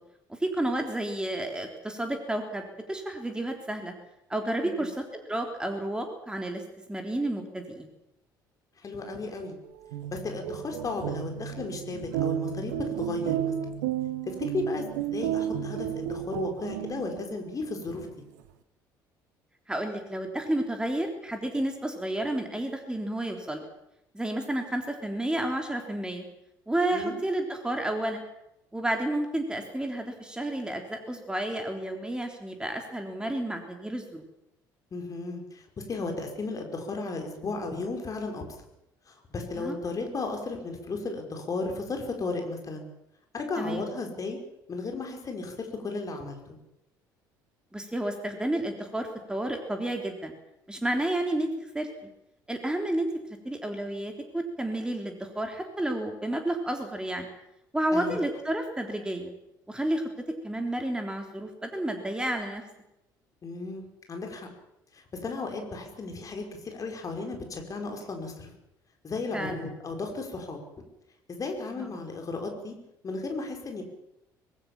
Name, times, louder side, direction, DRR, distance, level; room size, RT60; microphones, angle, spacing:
voice 1, 0.3-2.6 2.9-3.9 4.3-6.6 6.9-7.9 19.7-23.6 24.1-26.2 26.7-28.2 28.7-34.2 39.6-39.8 43.6-43.8 47.7-50.3 50.7-51.9 52.5-53.1 53.5-57.3 57.7-59.3 59.7-60.0 60.4-62.6 69.3-69.6 71.8-71.9, right 1 dB, 10° right, 4 dB, 3.5 m, -31 dB
voice 2, 8.8-9.6 10.1-13.5 14.3-18.1 26.9-27.2 34.9-38.4 39.1-42.9 43.3-44.4 44.7-46.6 57.9-58.2 63.4-64.5 64.9-68.5 69.0-70.6 71.3-72.8 73.0-73.8, left 3 dB, 30° left, 3 dB, 5.6 m, -34 dB
sound 1, 9.7-17.4, right 10 dB, 65° right, 1.5 m, -32 dB
25.0 x 19.5 x 7.4 m, 0.85 s
figure-of-eight pair, 55°, 11 cm